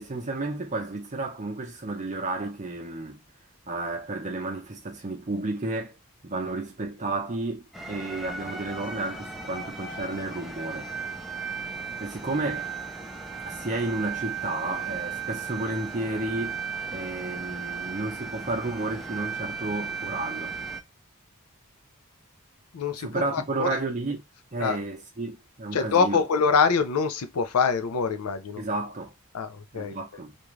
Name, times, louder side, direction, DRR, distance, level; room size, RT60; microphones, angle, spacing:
voice 1, 0.0-3.2 3.7-6.0 6.2-10.9 12.0-12.7 13.5-16.6 16.9-20.5 23.0-24.2 24.5-26.2 28.6-29.1 29.7-30.4, right 2 dB, 35° right, 0.7 m, -32 dB
sound 1, 7.7-20.8, right 5 dB, ahead, 0.5 m, -36 dB
voice 2, 22.7-23.8 24.6-24.8 25.7-28.6 29.3-30.0, left 5 dB, 80° left, 0.5 m, -25 dB
2.5 x 2.3 x 3.1 m
head